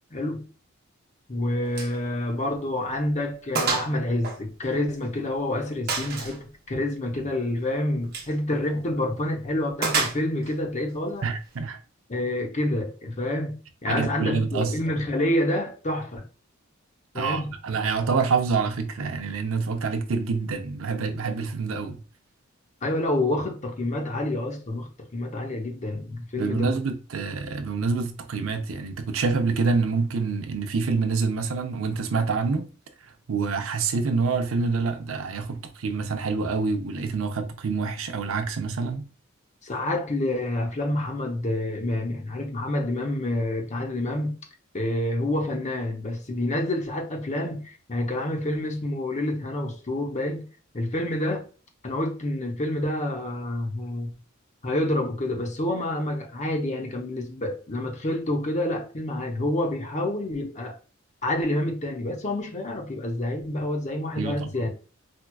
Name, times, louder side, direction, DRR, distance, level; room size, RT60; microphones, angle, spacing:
voice 1, 0.1-0.4 1.3-11.3 12.1-16.2 17.1-17.5 22.8-26.8 39.6-44.4 44.7-50.4 50.7-51.4 51.8-54.1 54.6-60.8 61.2-64.7, left 1 dB, 35° left, 0.7 m, -28 dB
Gunshot gunfire, 1.8-2.0 2.3-2.4 2.9-3.0 3.6-3.9 4.2-5.2 5.9-6.4 8.0-8.3 9.8-10.6, right 4 dB, 50° right, 0.8 m, -28 dB
voice 2, 11.2-11.8 13.9-14.7 17.2-22.0 26.4-32.7 33.3-39.1 64.2-64.5, right 4 dB, 75° right, 0.6 m, -26 dB
4.5 x 2.3 x 2.2 m
head